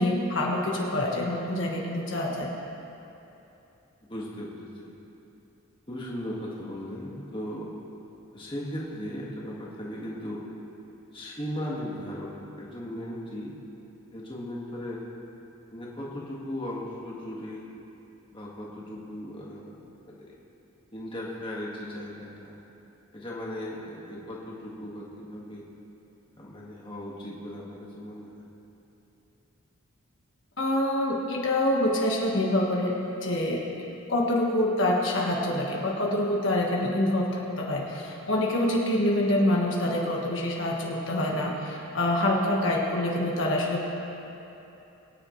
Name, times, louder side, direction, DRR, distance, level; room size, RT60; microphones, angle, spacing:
voice 1, 0.0-2.5 30.6-33.7 34.1-43.8, left 1 dB, 60° left, -2 dB, 1.5 m, -26 dB
voice 2, 4.1-4.9 5.9-7.7 8.3-10.5 11.1-13.6 14.1-15.0 15.7-17.7 18.3-20.3 20.9-22.6 23.1-25.7 26.4-28.5, left 1 dB, 25° left, -5 dB, 1.7 m, -37 dB
22.5 x 9.8 x 3.2 m, 2.9 s
head